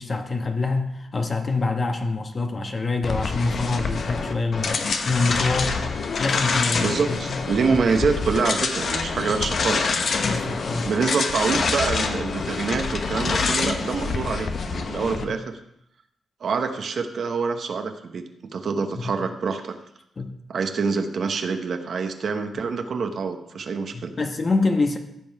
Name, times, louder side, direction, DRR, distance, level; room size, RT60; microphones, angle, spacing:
voice 1, 0.0-5.8 6.2-7.4 7.7-7.8 10.2-10.9 15.2-15.4 18.9-19.1 20.2-20.3 23.9-25.0, left 3 dB, 40° left, 5 dB, 1.3 m, -26 dB
sound 1, 3.0-15.2, left 4 dB, 60° left, 1.0 m, -26 dB
voice 2, 6.8-9.9 10.8-15.4 16.4-18.2 18.5-19.8 20.5-24.1, right 5 dB, 65° right, 7 dB, 1.0 m, -26 dB
15.5 x 5.4 x 4.7 m, 0.79 s
supercardioid pair, 60°, 0 cm